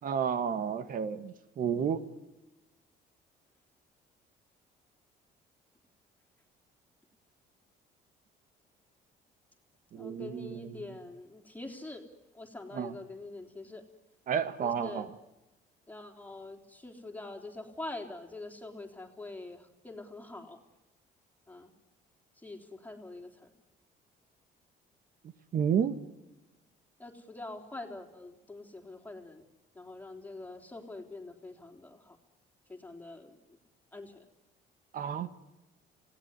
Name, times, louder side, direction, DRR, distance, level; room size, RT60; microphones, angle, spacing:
voice 1, 0.0-2.0 9.9-10.8 12.7-12.9 14.3-15.1 25.5-26.0 34.9-35.3, right 7 dB, 55° right, 12 dB, 1.7 m, -31 dB
voice 2, 9.9-12.1 12.3-13.8 14.6-15.1 15.9-20.6 21.5-21.7 22.4-23.5 27.0-29.4 29.7-32.2 32.7-33.6 33.9-34.2, left 2 dB, 10° left, 3 dB, 3.6 m, -45 dB
28.0 x 18.0 x 9.8 m, 1.1 s
cardioid pair, 110°, 17 cm